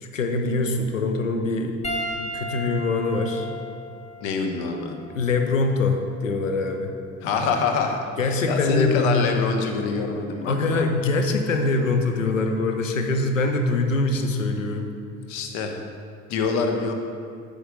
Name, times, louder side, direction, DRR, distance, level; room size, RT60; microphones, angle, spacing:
voice 1, 0.0-3.5 5.1-6.9 8.2-9.2 10.5-14.9, left 3 dB, 85° left, 5 dB, 0.7 m, -24 dB
Piano, 1.8-6.5 7.4-7.6 9.6-9.7, equal, 15° left, 1.2 m, -36 dB
voice 2, 4.2-5.0 7.2-10.9 15.3-15.8 16.3-16.9, left 4 dB, 60° left, 4 dB, 1.0 m, -26 dB
9.1 x 5.1 x 5.0 m, 2.3 s
figure-of-eight pair, 55°, 38 cm